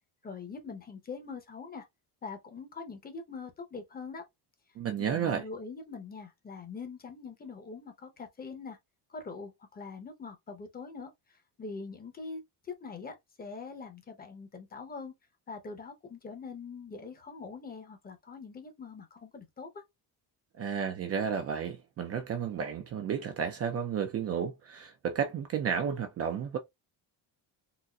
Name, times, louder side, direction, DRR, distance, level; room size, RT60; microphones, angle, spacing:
voice 1, 0.2-1.9 2.2-4.2 5.0-8.8 9.1-15.1 15.5-19.8, left 4 dB, 20° left, 0.7 m, -43 dB
voice 2, 4.8-5.4 20.6-26.6, right 7 dB, 35° right, 0.4 m, -32 dB
4.0 x 2.5 x 2.3 m
cardioid pair, 175°, 43 cm